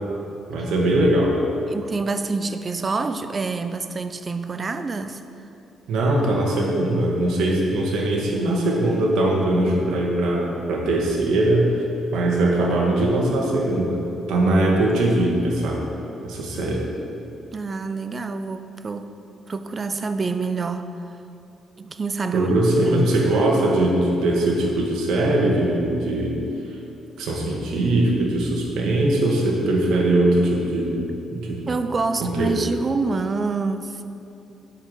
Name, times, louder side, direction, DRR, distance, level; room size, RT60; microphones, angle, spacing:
voice 1, 0.5-1.4 5.9-11.8 12.1-14.0 14.3-15.8 16.2-16.8 22.3-26.4 27.2-31.0 31.3-31.7 32.2-32.6, right 1 dB, 80° right, -2 dB, 1.6 m, -21 dB
voice 2, 1.7-5.2 17.5-19.1 19.5-21.0 21.8-23.2 31.7-34.0, right 4 dB, 35° right, 10 dB, 0.5 m, -27 dB
8.4 x 5.7 x 6.4 m, 2.8 s
cardioid pair, 90°, 0 cm